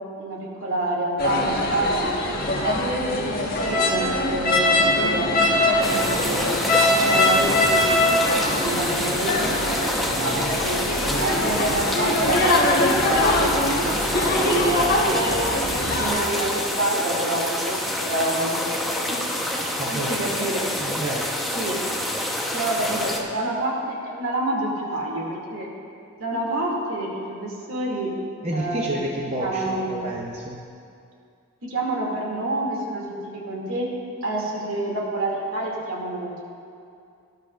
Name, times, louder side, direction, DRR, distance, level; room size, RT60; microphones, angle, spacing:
voice 1, 0.2-2.0 2.5-6.5 7.0-10.8 11.2-15.4 15.8-19.2 19.5-19.6 19.9-20.6 21.5-21.8 22.5-25.7 26.2-28.1 28.5-30.1 31.6-33.9 34.2-36.4, right 1 dB, 70° right, -3 dB, 2.5 m, -28 dB
sound 1, 1.2-16.1, left 1 dB, 45° left, 1.4 m, -22 dB
sound 2, 5.8-23.2, left 1 dB, ahead, 0.9 m, -27 dB
voice 2, 10.9-11.3 19.8-20.3 20.8-21.3 23.1-23.2 28.4-30.6, right 1 dB, 30° right, -2 dB, 0.8 m, -30 dB
18.5 x 12.0 x 2.5 m, 2.5 s
head